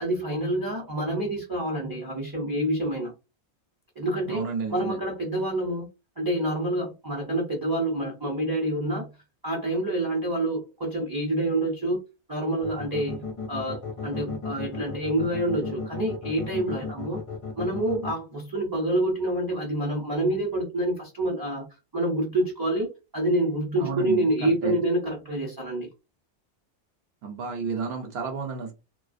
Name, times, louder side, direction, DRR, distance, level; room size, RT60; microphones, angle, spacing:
voice 1, 0.0-3.1 4.0-4.4 4.7-5.9 6.2-9.1 9.4-12.0 12.3-17.2 17.6-21.6 21.9-25.9, right 1 dB, 30° right, 0.4 m, -27 dB
voice 2, 4.3-5.0 23.8-24.8 27.2-28.7, right 5 dB, 70° right, 0.8 m, -31 dB
sound 1, 12.6-18.1, left 4 dB, 45° left, 0.5 m, -34 dB
2.4 x 2.2 x 2.5 m
omnidirectional pair, 1.1 m